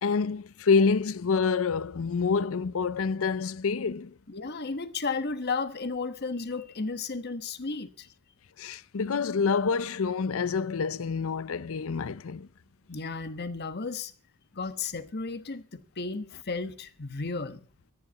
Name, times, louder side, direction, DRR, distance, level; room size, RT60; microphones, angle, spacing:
voice 1, 0.0-4.1 8.6-12.5, left 5 dB, 65° left, 0.5 m, -27 dB
voice 2, 4.3-8.1 12.9-14.1 14.5-17.6, left 4 dB, 50° left, 1.2 m, -34 dB
14.0 x 10.5 x 6.9 m
head